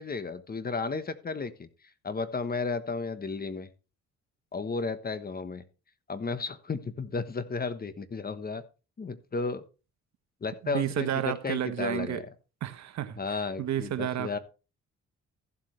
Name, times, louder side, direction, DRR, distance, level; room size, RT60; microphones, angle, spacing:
voice 1, 0.0-1.7 2.0-3.7 4.5-5.6 6.1-8.6 9.0-9.6 10.4-12.2 13.2-14.4, left 4 dB, 30° left, 1.2 m, -33 dB
voice 2, 10.6-12.2 12.6-14.4, right 11 dB, 65° right, 1.2 m, -31 dB
15.0 x 7.6 x 3.2 m
cardioid pair, 90°, 30 cm